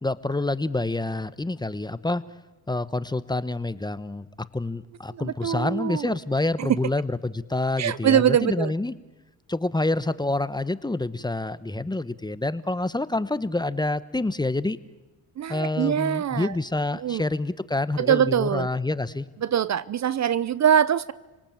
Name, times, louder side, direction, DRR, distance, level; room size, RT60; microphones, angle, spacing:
voice 1, 0.0-2.2 2.7-4.3 4.5-8.9 9.5-14.8 15.5-19.3, left 2 dB, 10° left, 15 dB, 1.0 m, -27 dB
voice 2, 5.1-6.2 6.6-6.8 7.8-8.7 15.4-16.5 16.9-17.2 18.0-18.7 19.4-21.1, right 9 dB, 40° right, 19 dB, 0.8 m, -23 dB
29.5 x 19.0 x 8.8 m, 1.1 s
supercardioid pair, 75°, 42 cm